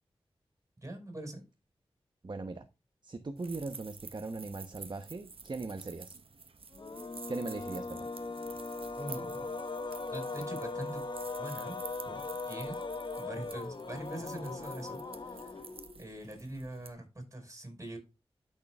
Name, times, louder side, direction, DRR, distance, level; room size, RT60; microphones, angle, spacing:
voice 1, 0.8-1.4 9.0-9.5 10.1-11.0 11.4-11.8 12.1-12.2 12.5-12.8 13.2-15.5 16.0-18.0, right 1 dB, 30° right, 5.4 m, -43 dB
voice 2, 2.2-2.7 3.0-6.1 7.3-8.1, right 3 dB, 50° right, 1.0 m, -39 dB
sound 1, 3.4-16.9, right 4 dB, 70° right, 1.1 m, -50 dB
sound 2, 6.7-16.1, left 3 dB, 50° left, 1.2 m, -39 dB
12.0 x 6.7 x 2.4 m
cardioid pair, 45°, 10 cm